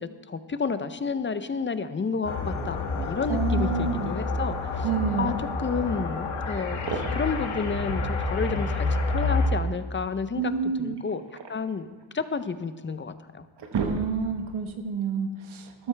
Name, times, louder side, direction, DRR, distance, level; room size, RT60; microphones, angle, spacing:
voice 1, 0.3-4.8 5.2-5.3 5.6-6.8 7.1-10.5 10.8-11.9 12.1-13.4, left 5 dB, 25° left, 12 dB, 0.6 m, -30 dB
sound 1, 2.3-9.5, left 3 dB, 90° left, 1.5 m, -28 dB
voice 2, 3.3-4.1 4.8-5.4 10.4-11.0 13.7-15.9, right 5 dB, 90° right, 6 dB, 1.3 m, -29 dB
sound 2, 6.7-7.4 8.9-9.7 11.0-12.4 12.9-13.0 13.4-14.5, right 4 dB, 60° right, 1.4 m, -35 dB
13.5 x 12.5 x 3.3 m, 1.3 s
wide cardioid pair, 105°, 47 cm